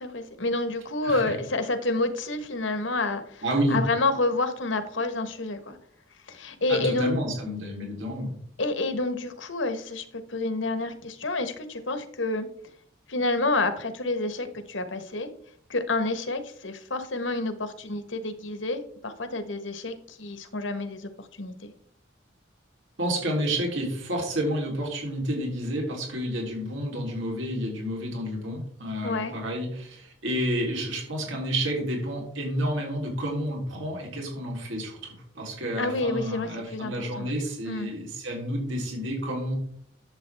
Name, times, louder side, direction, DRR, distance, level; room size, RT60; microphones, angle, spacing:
voice 1, 0.0-3.4 3.7-5.8 6.3-7.2 8.6-12.5 13.1-15.3 15.7-21.7 29.0-29.4 35.8-37.3 37.6-37.9, left 2 dB, 80° left, 9 dB, 1.3 m, -29 dB
voice 2, 3.4-3.8 6.7-8.3 23.0-39.6, equal, 85° right, -1 dB, 3.5 m, -30 dB
11.0 x 7.6 x 3.5 m, 0.62 s
head